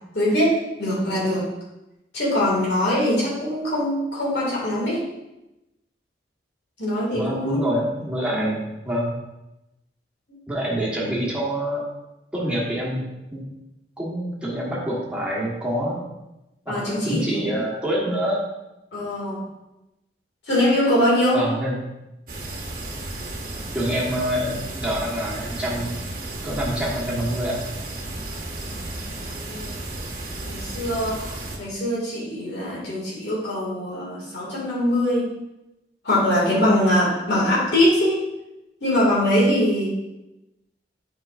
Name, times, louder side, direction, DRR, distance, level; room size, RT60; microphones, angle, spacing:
voice 1, 0.1-1.5 2.1-5.0 6.8-7.8 8.3-8.7 16.7-17.6 18.9-19.5 20.5-21.4 28.6-29.8 30.4-31.3 31.6-35.3 36.0-38.3 38.8-39.9, left 1 dB, 70° left, -5 dB, 2.2 m, -22 dB
voice 2, 7.1-9.1 10.5-11.9 12.3-13.0 13.3-13.4 14.0-16.0 16.6-18.4 21.3-21.9 23.7-26.0 26.4-27.6, equal, 5° right, -5 dB, 1.3 m, -26 dB
sound 1, 22.3-31.6, right 2 dB, 50° right, 1.0 m, -33 dB
7.6 x 5.1 x 2.5 m, 0.96 s
head